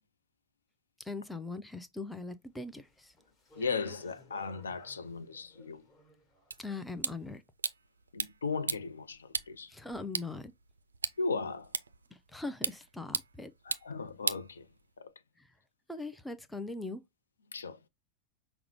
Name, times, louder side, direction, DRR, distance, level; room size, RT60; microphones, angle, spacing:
voice 1, 1.0-3.1 6.6-7.4 9.7-10.5 12.1-13.5 15.4-15.5 15.9-17.0, left 3 dB, 5° left, 0.4 m, -41 dB
Speech, 2.8-7.1, left 1 dB, 20° left, 1.3 m, -57 dB
voice 2, 3.6-5.9 8.1-9.7 11.2-11.7 13.6-14.7 15.0-15.1 17.5-17.8, left 4 dB, 70° left, 0.4 m, -36 dB
sound 1, 6.5-15.1, right 5 dB, 75° right, 0.3 m, -39 dB
5.8 x 2.1 x 2.9 m
figure-of-eight pair, 90°, 0 cm